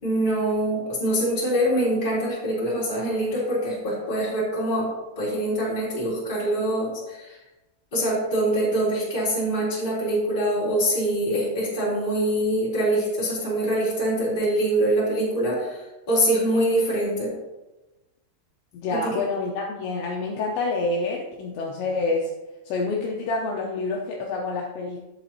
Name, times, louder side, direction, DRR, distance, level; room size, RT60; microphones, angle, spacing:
voice 1, 0.0-7.4 7.9-17.3 18.9-19.2, right 1 dB, 10° left, -7 dB, 2.6 m, -24 dB
voice 2, 18.7-22.3 22.7-25.1, left 3 dB, 80° left, -1 dB, 2.7 m, -27 dB
11.5 x 7.7 x 2.8 m, 1.0 s
omnidirectional pair, 5.7 m